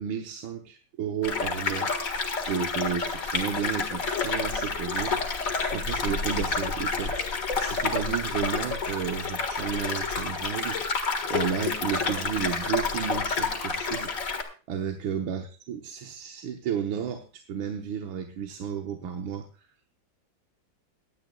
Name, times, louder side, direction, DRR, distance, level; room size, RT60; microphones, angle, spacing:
voice 1, 0.0-1.9 2.4-5.2 5.7-7.2 7.6-10.8 11.3-14.1 14.7-19.5, right 8 dB, 80° right, 4 dB, 1.8 m, -32 dB
sound 1, 1.2-14.4, left 4 dB, 45° left, 2.0 m, -29 dB
23.5 x 9.4 x 2.3 m, 0.35 s
omnidirectional pair, 2.1 m